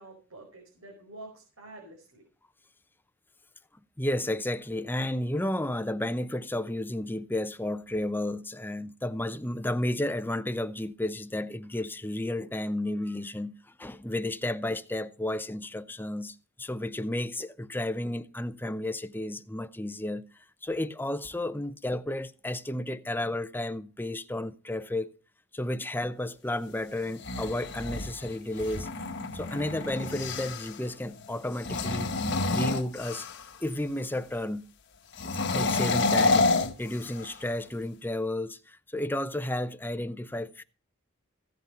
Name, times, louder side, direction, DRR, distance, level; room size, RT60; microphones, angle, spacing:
voice 1, 0.0-2.2, right 2 dB, 85° right, 4.9 m, -48 dB
voice 2, 4.0-20.2 20.6-25.1 25.5-28.9 29.3-32.1 32.5-33.3 33.6-34.7 35.5-40.6, left 1 dB, 10° left, 0.7 m, -32 dB
sound 1, 27.0-30.8 31.5-33.6 35.1-37.4, left 3 dB, 55° left, 1.3 m, -29 dB
16.0 x 8.2 x 5.2 m
head